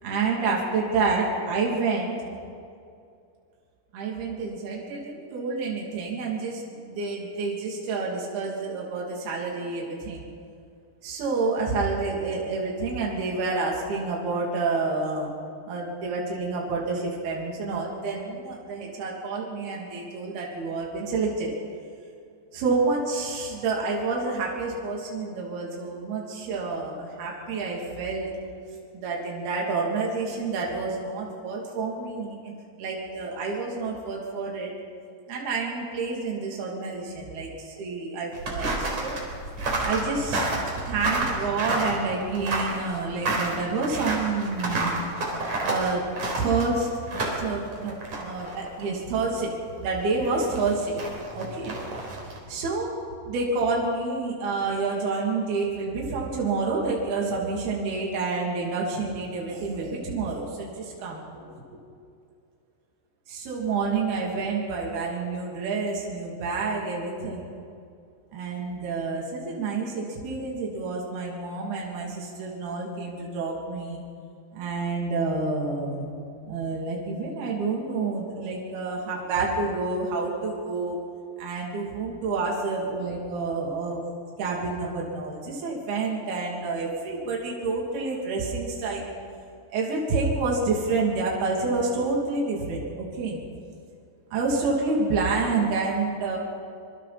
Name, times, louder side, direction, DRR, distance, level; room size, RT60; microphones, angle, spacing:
voice 1, 0.0-2.2 3.9-10.3 11.0-15.3 15.7-21.5 22.5-28.3 28.9-32.5 32.8-34.7 35.3-39.2 39.8-40.5 40.7-45.0 45.6-46.0 46.4-50.9 51.3-51.8 52.5-52.9 53.3-61.5 63.3-67.5 68.3-74.0 74.5-76.1 76.5-81.0 81.4-84.0 84.4-89.1 89.7-93.4 94.3-96.4, right 3 dB, 65° right, -2 dB, 4.8 m, -28 dB
sound 1, 38.3-48.8 49.1-49.2 50.2-52.4, right 2 dB, 45° right, 5.0 m, -30 dB
25.0 x 25.0 x 4.3 m, 2.4 s
omnidirectional pair, 4.9 m